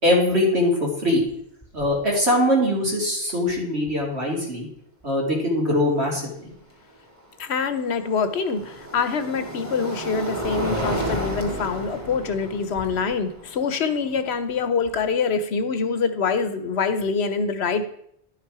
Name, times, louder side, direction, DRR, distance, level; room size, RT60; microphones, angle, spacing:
voice 1, 0.0-1.2 1.7-4.7 5.0-6.5, left 1 dB, 90° right, -2 dB, 2.9 m, -22 dB
sound 1, 1.2-1.3 1.6-2.0 3.9-4.0 7.0-15.1, equal, 15° right, 1.7 m, -32 dB
voice 2, 7.4-17.9, left 5 dB, 90° left, 11 dB, 1.1 m, -25 dB
11.0 x 6.0 x 4.8 m, 0.70 s
omnidirectional pair, 1.1 m